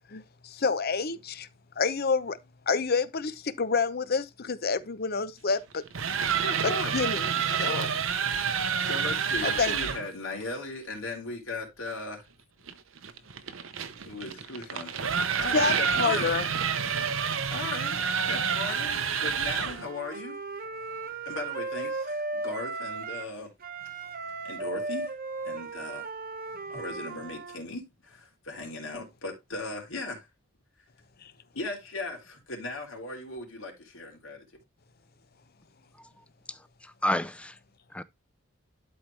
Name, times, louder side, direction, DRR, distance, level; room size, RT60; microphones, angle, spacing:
voice 1, 0.1-1.5 1.8-2.4 2.7-5.8 6.6-7.9 9.4-9.7 15.5-16.5 31.2-31.3, left 4 dB, 50° left, 0.7 m, -28 dB
sound 1, 5.7-10.1 12.7-19.9, right 7 dB, 80° right, 0.9 m, -29 dB
voice 2, 6.4-6.9 7.5-8.0 8.8-12.2 14.1-16.4 17.5-20.4 21.2-23.5 24.4-25.1 25.4-26.1 26.7-30.3 31.5-34.4, left 2 dB, 85° left, 3.6 m, -38 dB
Wind instrument woodwind instrument, 19.6-23.3 23.6-27.6, right 3 dB, 45° right, 1.0 m, -36 dB
voice 3, 36.5-37.6 37.9-38.0, left 1 dB, 5° left, 0.5 m, -31 dB
12.0 x 4.5 x 3.3 m
head